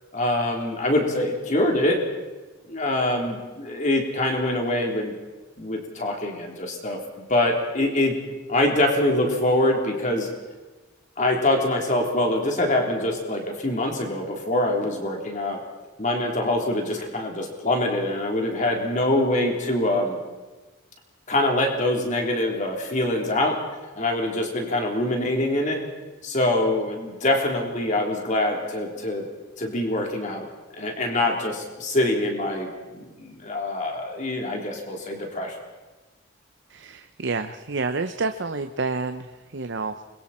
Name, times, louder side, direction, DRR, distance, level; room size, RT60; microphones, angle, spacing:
voice 1, 0.1-2.0 2.7-5.1 5.6-7.0 7.3-8.2 8.5-10.3 11.2-15.6 16.0-20.2 21.3-23.5 23.9-25.8 26.2-29.2 29.6-30.5 30.8-35.6, left 1 dB, 40° left, 1 dB, 3.5 m, -24 dB
voice 2, 36.7-39.9, right 3 dB, 60° right, 8 dB, 0.7 m, -29 dB
28.5 x 22.0 x 4.3 m, 1.2 s
head